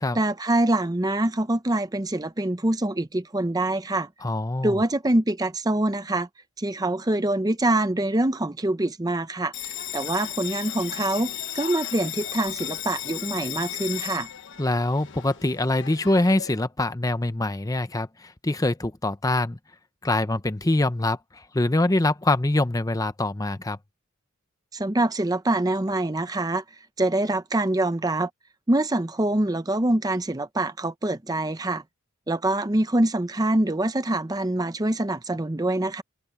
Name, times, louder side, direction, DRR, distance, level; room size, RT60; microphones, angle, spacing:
voice 1, 0.1-4.1 4.6-6.3 6.6-14.3 24.7-26.6 27.0-28.3 28.7-31.8 32.3-36.0, right 1 dB, 20° right, 0.7 m, -25 dB
voice 2, 4.2-4.8 14.6-19.6 20.0-23.8, left 2 dB, 15° left, 0.7 m, -24 dB
Bell, 9.5-16.5, left 11 dB, 60° left, 1.3 m, -35 dB
open air
head